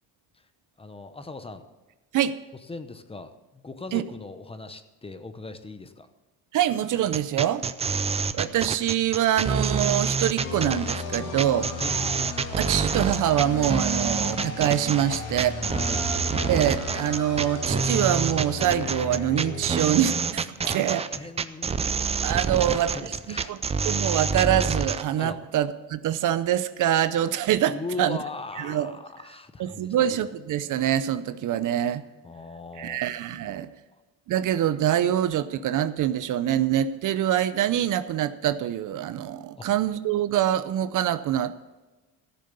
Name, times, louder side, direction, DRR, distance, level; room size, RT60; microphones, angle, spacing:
voice 1, 0.8-1.6 2.7-6.1 11.8-12.0 15.1-15.2 15.7-16.1 20.6-22.0 22.5-23.6 25.2-25.4 27.7-30.1 32.2-34.0 39.6-39.7, left 3 dB, 15° left, 10 dB, 0.8 m, -39 dB
voice 2, 6.5-7.7 8.3-11.7 12.6-15.5 16.5-21.0 22.2-23.6 23.9-28.2 28.6-28.9 29.6-32.0 32.8-33.7 34.3-41.5, right 11 dB, 55° right, 14 dB, 0.6 m, -25 dB
sound 1, 7.1-25.0, right 5 dB, 20° right, 0.4 m, -27 dB
sound 2, 10.4-21.0, left 4 dB, 80° left, 2.6 m, -35 dB
14.5 x 6.7 x 6.8 m, 1.2 s
cardioid pair, 115°, 37 cm